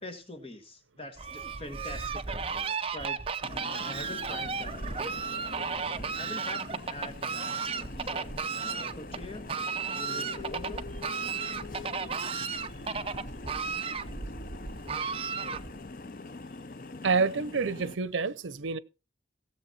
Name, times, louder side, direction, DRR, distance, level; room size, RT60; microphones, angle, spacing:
voice 1, 0.0-5.3 6.1-9.5 9.9-10.9, left 1 dB, 30° left, 1.6 m, -44 dB
Fowl, 1.2-15.9, right 5 dB, 30° right, 0.7 m, -34 dB
sound 1, 3.4-18.0, left 3 dB, 45° left, 0.5 m, -44 dB
voice 2, 17.0-18.8, right 4 dB, 90° right, 0.7 m, -28 dB
17.0 x 7.5 x 4.2 m
head